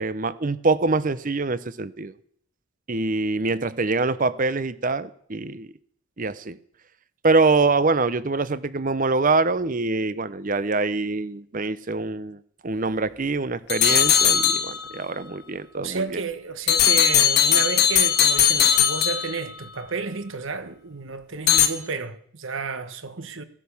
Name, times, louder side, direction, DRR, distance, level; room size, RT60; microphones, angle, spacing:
voice 1, 0.0-2.1 2.9-5.7 6.2-6.6 7.2-16.2, right 3 dB, 40° right, 0.7 m, -24 dB
sound 1, 13.7-15.0 16.7-19.7 21.5-21.7, left 9 dB, 45° left, 1.7 m, -19 dB
voice 2, 15.8-23.4, right 4 dB, 60° right, 1.3 m, -31 dB
17.0 x 11.0 x 7.1 m
head